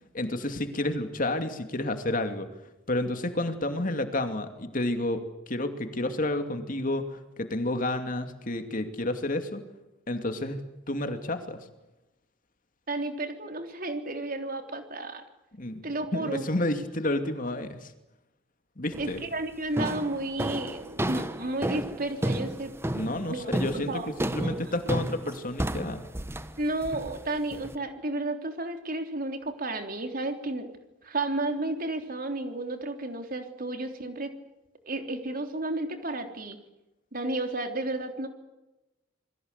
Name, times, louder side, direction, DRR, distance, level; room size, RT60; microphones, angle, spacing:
voice 1, 0.1-2.5 2.9-9.6 10.1-10.6 10.9-11.6 15.6-15.8 16.1-17.9 18.8-19.2 22.9-26.0, left 1 dB, 45° left, 7 dB, 2.7 m, -30 dB
voice 2, 12.9-15.2 15.8-16.5 19.0-22.7 23.3-24.1 24.4-24.7 26.6-30.7 31.0-34.3 34.9-36.6 37.1-38.3, right 2 dB, 45° right, 6 dB, 3.5 m, -32 dB
sound 1, 18.9-19.3 19.8-27.7, right 1 dB, 10° right, 1.2 m, -32 dB
28.0 x 22.5 x 8.3 m, 0.97 s
head